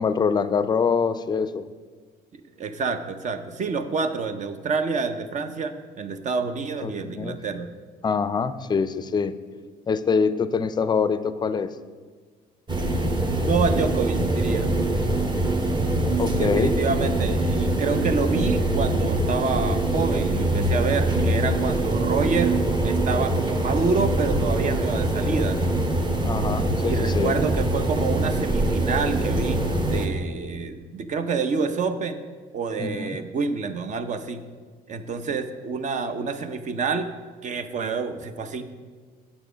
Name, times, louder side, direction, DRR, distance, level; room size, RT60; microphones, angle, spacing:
voice 1, 0.0-1.7 6.8-7.4 8.0-9.3 9.9-11.7 16.2-16.8 26.2-27.3 32.8-33.2, left 5 dB, 25° left, 13 dB, 0.5 m, -24 dB
voice 2, 2.6-7.7 13.4-14.7 16.4-22.6 22.8-25.7 26.8-32.2 32.5-34.4 34.9-37.1 37.4-38.6, right 4 dB, 45° right, 9 dB, 0.7 m, -27 dB
sound 1, 12.7-30.1, right 1 dB, 25° right, 1.1 m, -23 dB
9.0 x 7.1 x 5.0 m, 1.5 s
cardioid pair, 110°, 17 cm